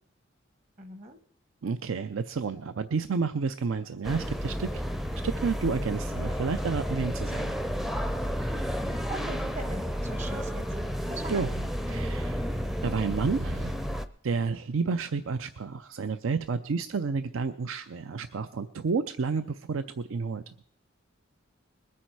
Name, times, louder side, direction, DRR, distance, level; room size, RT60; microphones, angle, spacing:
voice 1, 0.8-1.2 9.1-11.4, right 2 dB, 35° right, 9 dB, 1.0 m, -41 dB
voice 2, 1.6-4.8 5.2-7.5 11.3-14.0 14.2-20.5, right 5 dB, 80° right, 11 dB, 0.5 m, -31 dB
sound 1, 4.0-14.0, equal, ahead, 0.5 m, -31 dB
21.0 x 8.5 x 4.7 m, 0.69 s
head